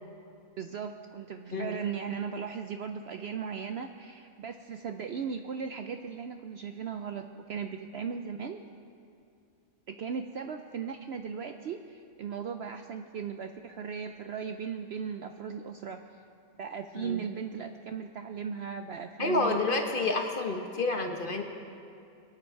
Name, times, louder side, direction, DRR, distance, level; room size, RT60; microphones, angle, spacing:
voice 1, 0.6-8.6 9.9-16.0 16.6-19.6 20.0-20.1, right 6 dB, 65° right, 6 dB, 0.7 m, -37 dB
voice 2, 19.2-21.4, left 2 dB, 40° left, 4 dB, 1.0 m, -29 dB
22.5 x 9.0 x 4.5 m, 2.5 s
omnidirectional pair, 1.5 m